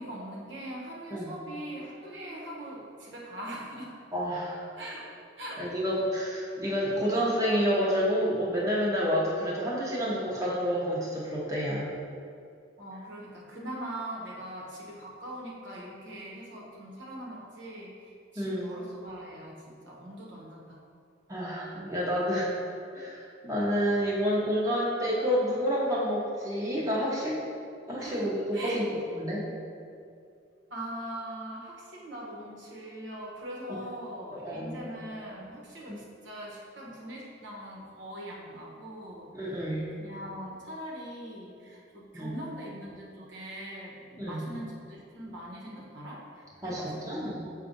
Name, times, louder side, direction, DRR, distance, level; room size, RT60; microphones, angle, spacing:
voice 1, 0.0-4.0 4.8-5.1 5.4-5.7 12.8-20.8 27.9-28.8 30.7-39.7 40.0-47.6, right 1 dB, 70° right, -4 dB, 1.1 m, -41 dB
voice 2, 4.1-4.6 5.6-11.9 18.4-18.7 21.3-22.5 22.9-27.4 27.9-28.9 29.1-29.4 34.3-34.8 35.9-36.0 39.3-39.9 42.1-42.3 44.2-44.4 46.6-47.5, equal, 20° right, -6 dB, 1.0 m, -29 dB
7.3 x 2.5 x 5.2 m, 2.4 s
head